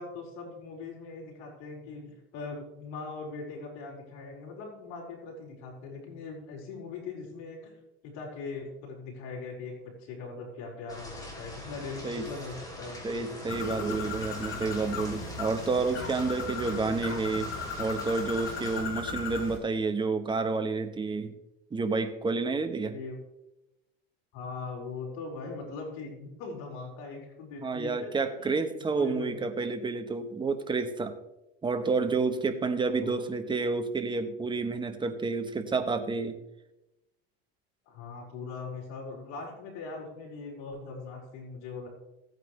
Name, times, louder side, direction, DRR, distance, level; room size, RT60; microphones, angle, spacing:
voice 1, 0.0-7.7 8.0-13.4 14.6-14.8 22.9-23.2 24.3-28.1 28.4-29.4 32.9-33.2 37.8-41.9, left 4 dB, 60° left, -1 dB, 5.0 m, -41 dB
sound 1, 10.9-18.8, left 1 dB, 10° left, 3.6 m, -43 dB
voice 2, 13.0-17.5 17.8-21.3 21.7-22.9 27.6-31.2 31.6-36.4, right 4 dB, 15° right, 8 dB, 1.1 m, -30 dB
Bird, 13.5-19.6, left 5 dB, 40° left, 3.4 m, -37 dB
15.5 x 9.2 x 3.3 m, 0.91 s
supercardioid pair, 120°, 31 cm